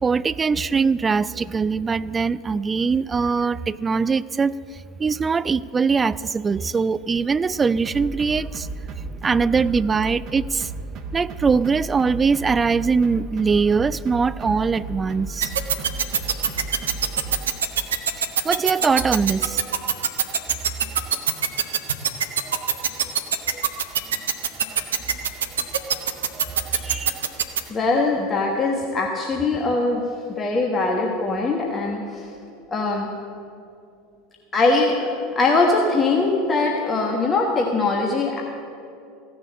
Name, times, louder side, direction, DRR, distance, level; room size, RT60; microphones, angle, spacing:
voice 1, 0.0-8.7 9.2-10.7 11.1-15.5 16.3-16.4 18.2-20.0 22.5-22.6 23.0-23.1 23.5-23.6 24.8-24.9 25.9-26.0 26.3-27.2, right 5 dB, 20° right, 17 dB, 0.3 m, -22 dB
sound 1, 7.8-17.5, right 3 dB, 40° right, 1.1 m, -35 dB
sound 2, 15.4-27.6, right 8 dB, 70° right, 0.8 m, -21 dB
voice 2, 27.7-30.0 30.4-32.3 32.7-33.1 34.5-38.4, left 3 dB, 25° left, 0 dB, 1.3 m, -21 dB
15.5 x 6.8 x 8.3 m, 2.5 s
figure-of-eight pair, 75°, 0 cm